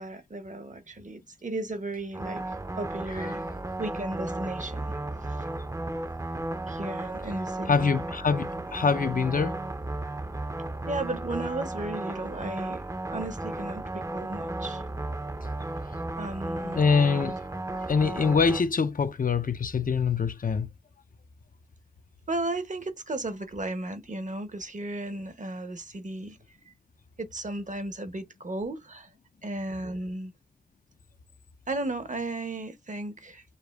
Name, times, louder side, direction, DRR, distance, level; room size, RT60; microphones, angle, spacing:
voice 1, 0.0-3.4 3.8-4.9 5.3-5.4 6.7-7.8 10.9-12.8 13.1-14.8 16.2-16.8 22.3-26.4 26.7-26.8 27.2-29.1 29.4-30.3 31.7-33.4, right 2 dB, 55° right, 0.8 m, -35 dB
sound 1, 2.1-18.6, right 2 dB, 20° right, 0.5 m, -34 dB
voice 2, 7.7-9.5 16.6-17.4 17.7-20.7, left 5 dB, 65° left, 0.5 m, -24 dB
6.5 x 2.6 x 2.3 m
wide cardioid pair, 55°, 15 cm